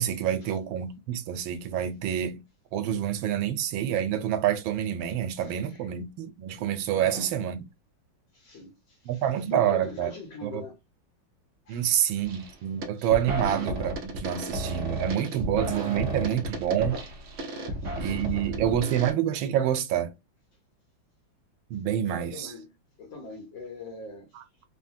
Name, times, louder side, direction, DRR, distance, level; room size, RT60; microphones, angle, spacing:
voice 1, 0.0-2.4 2.7-7.6 9.1-10.1 10.4-10.6 11.7-17.0 18.0-20.1 21.7-22.5, right 10 dB, 90° right, 1.4 m, -27 dB
voice 2, 5.4-5.9 6.9-7.3 8.3-10.8 11.6-12.2 13.3-13.5 14.9-15.0 15.3-15.4 17.5-18.0 18.5-18.8 22.1-24.6, left 3 dB, 75° left, 1.6 m, -44 dB
sound 1, 12.2-12.5 12.8-19.1, right 1 dB, 60° right, 0.8 m, -33 dB
3.7 x 2.1 x 2.5 m
omnidirectional pair, 2.1 m